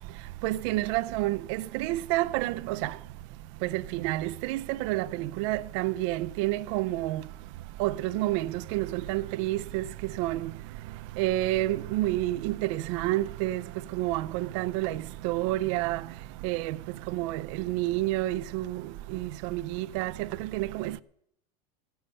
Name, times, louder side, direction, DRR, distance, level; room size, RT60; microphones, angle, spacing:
voice 1, 0.4-2.9 3.7-5.1 5.4-7.2 7.8-9.8 10.2-10.4 11.2-13.6 14.0-14.9 15.2-16.0 16.4-16.8 17.2-18.8 19.5-20.1 20.5-21.0, right 17 dB, 50° right, 0.5 m, -29 dB
15.5 x 6.9 x 9.8 m
supercardioid pair, 170°, 21 cm